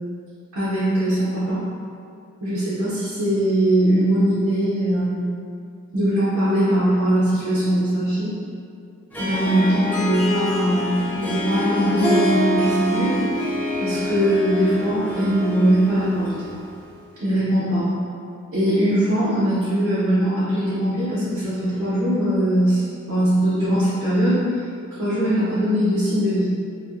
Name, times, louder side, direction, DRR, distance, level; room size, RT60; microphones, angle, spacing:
voice 1, 0.5-1.6 2.4-5.1 5.9-8.3 9.2-13.1 13.8-16.3 17.2-17.9 18.5-22.8 23.1-24.4 25.0-26.5, right 1 dB, 90° right, -13 dB, 0.9 m, -21 dB
Harp, 9.1-16.8, equal, 10° left, 0.3 m, -26 dB
2.7 x 2.4 x 2.4 m, 2.3 s
head